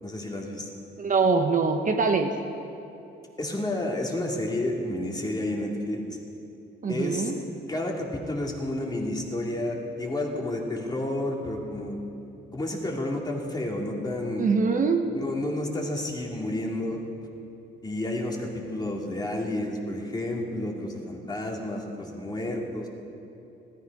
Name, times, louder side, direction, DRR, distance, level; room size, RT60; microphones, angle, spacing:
voice 1, 0.0-0.7 3.4-6.0 6.9-7.3 7.7-12.0 12.5-14.5 15.1-17.0 17.8-22.9, left 1 dB, 20° left, 0 dB, 2.4 m, -30 dB
voice 2, 1.0-2.4 6.8-7.3 14.4-15.0, right 4 dB, 40° right, 5 dB, 1.0 m, -23 dB
15.5 x 13.0 x 5.3 m, 2.8 s
cardioid pair, 90°, 20 cm